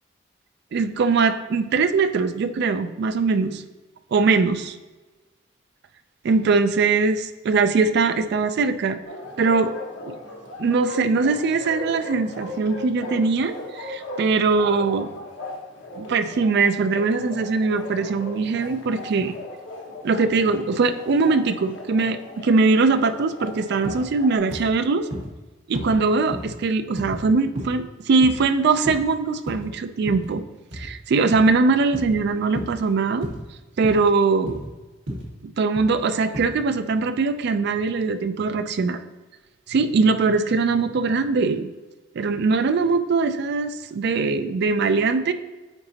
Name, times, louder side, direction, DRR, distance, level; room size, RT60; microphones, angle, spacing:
voice 1, 0.7-3.6 4.1-4.8 6.2-9.0 9.4-9.7 10.1-10.2 10.6-15.1 16.0-19.3 20.0-25.1 25.7-30.4 30.7-33.3 33.8-34.6 35.4-39.0 39.7-41.7 42.2-45.3, right 4 dB, 60° right, 10 dB, 0.4 m, -21 dB
Bark, 9.0-24.4, left 1 dB, 85° left, 1.1 m, -37 dB
sound 1, 23.8-24.1 24.5-24.7 25.1-25.3 25.7-26.0 26.3-26.5 27.0-27.2 27.6-27.8 28.2-28.4 28.8-29.1 29.5-29.7 30.1-30.3 30.7-30.9 31.3-31.6 31.9-32.2 32.5-32.8 33.2-33.4 33.8-34.0 34.5-34.7 35.1-35.3 35.7-36.0 36.3-36.4, equal, 85° right, 1.6 m, -33 dB
9.0 x 3.8 x 2.8 m, 1.2 s
head